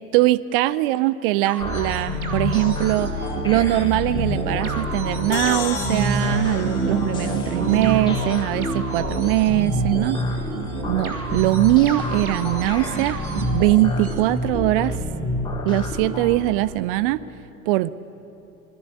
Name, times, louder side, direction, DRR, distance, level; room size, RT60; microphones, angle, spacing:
voice 1, 0.1-3.1 3.4-10.2 10.9-13.2 13.5-14.9 15.6-17.2 17.7-17.9, right 17 dB, 40° right, 18 dB, 0.6 m, -21 dB
sound 1, 1.4-14.2, right 5 dB, 70° right, 2.5 m, -33 dB
sound 2, 1.6-16.4, equal, 10° left, 4.0 m, -27 dB
sound 3, 5.3-8.9, left 9 dB, 60° left, 2.2 m, -35 dB
26.0 x 21.0 x 8.4 m, 2.9 s
figure-of-eight pair, 85°, 45 cm